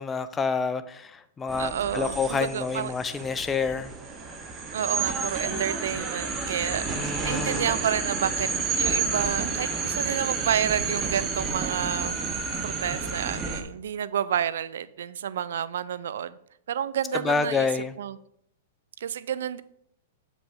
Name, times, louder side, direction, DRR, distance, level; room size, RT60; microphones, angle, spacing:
voice 1, 0.0-3.9 7.0-7.7 17.2-17.9, left 5 dB, 15° left, 11 dB, 0.4 m, -28 dB
sound 1, 1.5-13.6, right 4 dB, 20° right, 0.9 m, -30 dB
voice 2, 1.6-2.9 4.7-8.5 8.8-12.2 12.6-16.4 16.7-18.2 19.0-19.6, right 9 dB, 75° right, 17 dB, 0.4 m, -30 dB
7.3 x 5.0 x 3.5 m, 0.71 s
hypercardioid pair, 135°, 0 cm